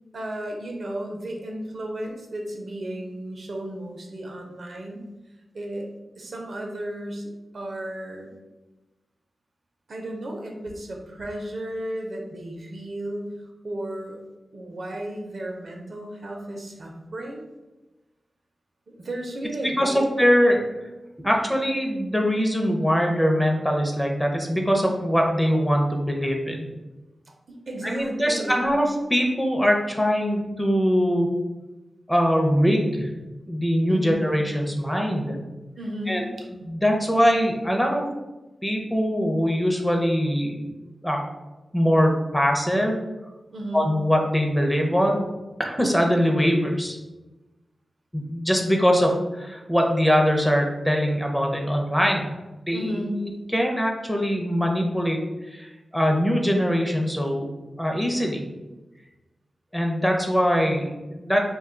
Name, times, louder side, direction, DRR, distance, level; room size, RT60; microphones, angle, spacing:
voice 1, 0.1-5.1 5.5-5.9 6.2-8.3 9.9-13.4 13.6-14.2 14.5-17.4 18.9-20.1 27.5-28.8 33.9-34.2 35.8-36.5 43.5-44.0 52.7-53.3, right 1 dB, 70° right, 1 dB, 0.5 m, -34 dB
voice 2, 19.8-20.6 21.2-26.7 27.8-31.3 32.1-33.1 33.5-35.4 36.1-36.2 36.5-38.1 38.6-40.7 41.0-41.2 41.7-43.0 43.7-45.2 45.6-47.0 48.1-52.3 52.7-52.9 53.5-57.5 57.8-58.5 59.7-61.4, equal, 10° left, 1 dB, 0.6 m, -22 dB
2.5 x 2.2 x 3.7 m, 1.1 s
cardioid pair, 45°, 0 cm